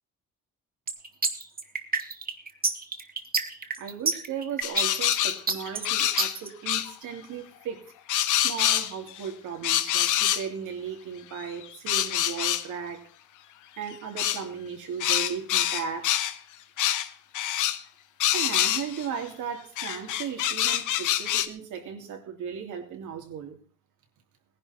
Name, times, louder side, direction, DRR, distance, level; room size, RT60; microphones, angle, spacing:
sound 1, 0.9-6.5, right 4 dB, 30° right, 1.9 m, -28 dB
voice 1, 3.8-7.8 8.3-13.1 13.8-16.1 18.3-23.6, right 7 dB, 80° right, 3 dB, 3.2 m, -36 dB
sound 2, 4.6-6.4 6.7-6.9 8.1-9.2 9.6-10.4 11.4-12.6 14.2-14.4 15.0-16.4 16.8-17.1 17.3-17.8 18.2-19.1 19.8-21.5, left 12 dB, 85° left, 1.1 m, -26 dB
17.5 x 11.0 x 4.4 m, 0.41 s
cardioid pair, 90°, 30 cm